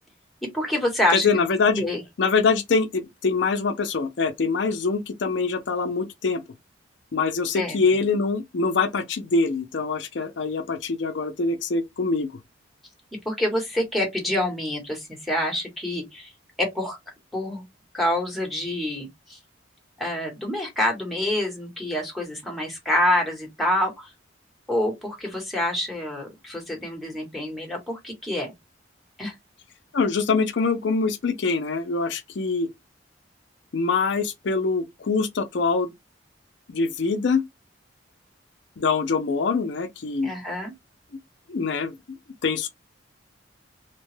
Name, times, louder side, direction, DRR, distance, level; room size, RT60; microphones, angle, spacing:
voice 1, 0.5-1.4 1.8-2.0 7.5-7.8 13.2-16.3 16.6-17.0 17.3-17.6 17.9-19.4 20.0-24.1 24.7-28.5 29.2-29.3 40.2-40.7, left 1 dB, ahead, 1.0 m, -27 dB
voice 2, 1.1-1.8 2.2-6.4 7.1-12.3 29.9-32.7 33.7-35.9 36.7-37.4 38.8-40.3 41.5-42.2 42.4-42.7, left 4 dB, 65° left, 0.5 m, -24 dB
2.8 x 2.2 x 3.1 m
head